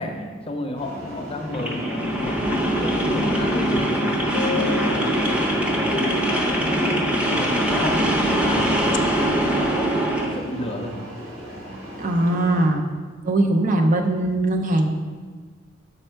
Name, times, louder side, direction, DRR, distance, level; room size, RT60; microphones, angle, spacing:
voice 1, 0.0-4.1 4.5-10.9, left 1 dB, 30° left, 3 dB, 0.6 m, -31 dB
sound 1, 0.8-12.7, equal, 80° right, 1.6 m, -37 dB
sound 2, 1.5-10.4, right 1 dB, 5° right, 0.7 m, -22 dB
sound 3, 4.3-6.1 8.7-9.0, left 6 dB, 60° left, 0.4 m, -32 dB
voice 2, 12.0-12.9 13.2-14.9, right 1 dB, 40° right, 4 dB, 0.5 m, -20 dB
6.3 x 4.3 x 4.5 m, 1.5 s
head